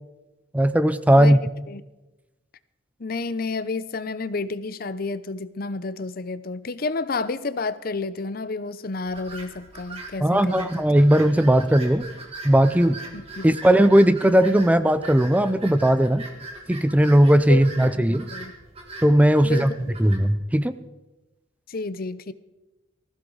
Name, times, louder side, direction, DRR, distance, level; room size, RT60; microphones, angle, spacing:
voice 1, 0.5-1.4 10.2-12.1 12.4-13.0 13.4-16.3 16.7-18.3 19.0-19.7 20.0-20.7, right 1 dB, 10° right, 12 dB, 0.5 m, -18 dB
voice 2, 3.0-10.8 13.1-13.5 17.5-17.6 17.9-18.0 18.3-18.5 19.4-19.7 21.7-22.3, left 3 dB, 50° left, 15 dB, 0.7 m, -30 dB
sound 1, 9.1-20.2, right 2 dB, 30° right, 2.6 m, -41 dB
20.0 x 15.5 x 4.0 m, 1.0 s
head